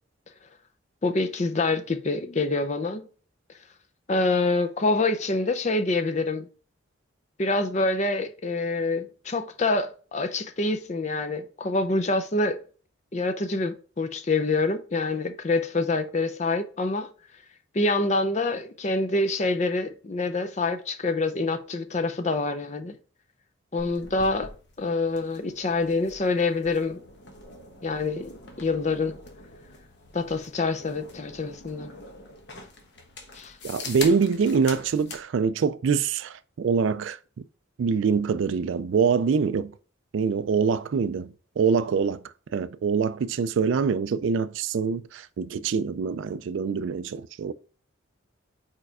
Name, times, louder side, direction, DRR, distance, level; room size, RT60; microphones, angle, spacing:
voice 1, 1.0-3.1 4.1-6.5 7.4-12.6 13.1-17.1 17.7-23.0 23.7-24.5 24.8-27.0 27.8-29.1 30.1-31.9 33.3-33.5, left 3 dB, 35° left, 0.5 m, -26 dB
sound 1, 23.8-35.2, left 3 dB, 55° left, 1.2 m, -43 dB
voice 2, 33.6-37.2 37.8-39.7 40.1-42.2 42.5-47.5, right 5 dB, 70° right, 0.3 m, -25 dB
4.6 x 4.4 x 4.7 m
head